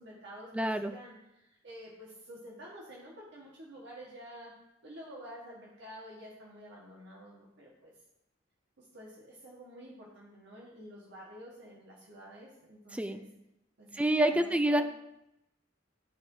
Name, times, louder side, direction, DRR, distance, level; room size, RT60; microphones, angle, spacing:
voice 1, 0.0-4.5 4.8-7.9 8.8-13.2 13.8-14.8, equal, 65° right, -4 dB, 1.4 m, -49 dB
voice 2, 0.5-0.9 12.9-13.2 13.9-14.8, right 1 dB, 5° right, 7 dB, 0.4 m, -27 dB
12.5 x 4.4 x 2.7 m, 0.84 s
head